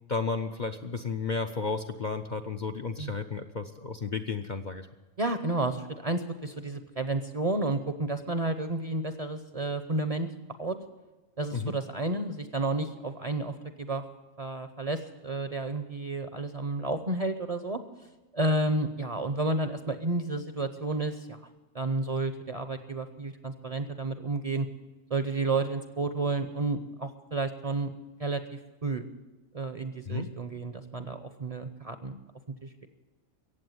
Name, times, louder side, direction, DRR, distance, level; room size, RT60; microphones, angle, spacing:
voice 1, 0.1-4.9 11.5-11.8 30.1-30.3, left 4 dB, 50° left, 5 dB, 0.6 m, -33 dB
voice 2, 5.2-10.3 10.6-10.8 11.4-14.0 14.4-17.8 18.3-21.4 21.7-24.7 25.1-27.9 28.2-29.1 29.5-32.2 32.6-32.9, right 2 dB, 35° right, 8 dB, 0.7 m, -31 dB
15.5 x 8.6 x 9.3 m, 1.1 s
omnidirectional pair, 1.4 m